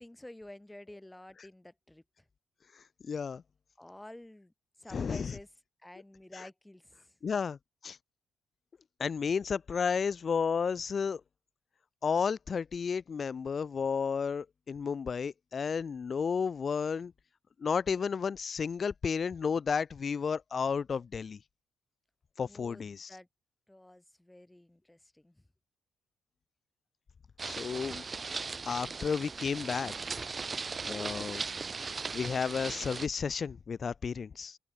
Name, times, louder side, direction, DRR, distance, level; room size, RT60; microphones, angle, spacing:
voice 1, 0.0-2.0 3.8-4.5 4.8-5.5 5.8-7.1 22.5-23.3 23.7-25.4, left 1 dB, 10° left, 7.3 m, -50 dB
voice 2, 3.0-3.4 4.9-5.3 7.2-7.6 7.8-8.0 9.0-11.2 12.0-17.1 17.6-21.4 22.4-23.1 27.4-28.0 28.7-29.9 30.8-31.4 31.9-34.6, left 6 dB, 45° left, 0.5 m, -32 dB
sound 1, 27.4-33.1, right 4 dB, 30° right, 1.2 m, -38 dB
open air
cardioid pair, 90°, 0 cm